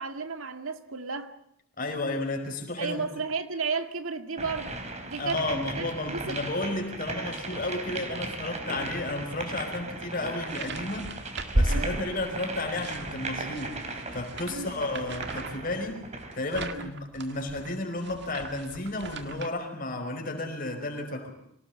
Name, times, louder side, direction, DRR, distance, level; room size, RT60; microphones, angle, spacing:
voice 1, 0.0-1.3 2.8-4.7 5.0-6.4 11.7-12.0 14.5-14.8 16.7-16.8, right 4 dB, 90° right, 2.1 m, -33 dB
voice 2, 1.8-3.0 5.2-11.1 11.5-13.8 14.1-16.0 16.3-21.3, left 2 dB, 45° left, 5.1 m, -32 dB
sound 1, 4.4-16.4, right 2 dB, 35° right, 3.7 m, -38 dB
sound 2, 10.5-12.4 12.8-19.5, right 1 dB, 55° right, 2.0 m, -34 dB
25.5 x 18.5 x 8.6 m
head